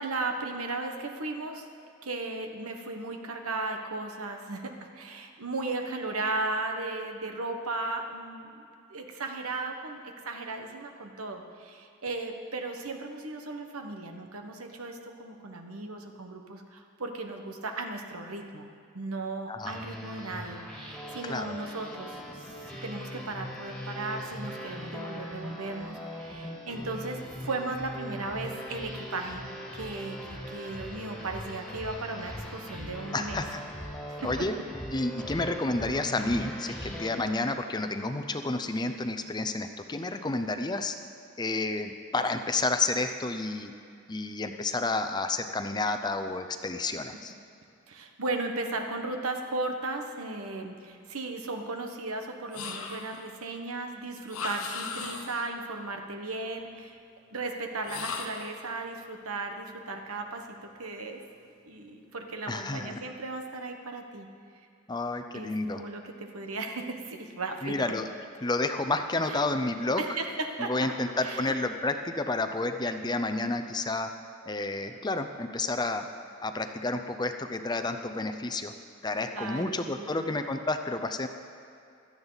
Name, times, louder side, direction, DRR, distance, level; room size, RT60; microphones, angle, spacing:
voice 1, 0.0-1.7 2.0-8.6 8.9-18.7 18.9-22.4 22.8-33.4 34.1-34.2 47.9-56.9 57.3-61.2 61.7-64.3 65.3-67.9 69.3-69.4 70.0-70.9 71.2-71.6 79.3-80.3, right 2 dB, 85° right, 4 dB, 1.3 m, -36 dB
sound 1, 19.6-37.1, equal, 5° left, 2.1 m, -40 dB
voice 2, 33.1-33.6 34.2-34.5 34.9-40.9 41.4-43.7 44.1-47.3 62.5-63.0 64.9-65.8 67.6-68.1 68.4-70.0 70.6-74.1 74.5-76.0 76.4-78.7 79.0-81.3, left 2 dB, 20° left, 7 dB, 0.6 m, -30 dB
sound 2, 52.5-53.3 54.3-55.5 57.8-58.6, left 5 dB, 85° left, 1.3 m, -37 dB
16.5 x 12.5 x 4.1 m, 2.5 s
head